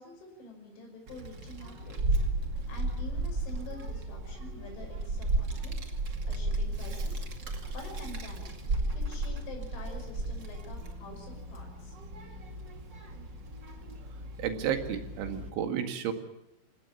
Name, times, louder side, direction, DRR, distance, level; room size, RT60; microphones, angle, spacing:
voice 1, 0.0-2.2 2.7-5.8 6.3-8.5 8.9-12.0, left 2 dB, 75° left, 2 dB, 8.2 m, -47 dB
Child speech kid speaking, 1.1-15.5, right 2 dB, 40° right, 1.8 m, -34 dB
voice 2, 14.4-16.1, right 9 dB, 75° right, 6 dB, 4.4 m, -32 dB
27.5 x 17.0 x 8.4 m, 0.87 s
omnidirectional pair, 5.5 m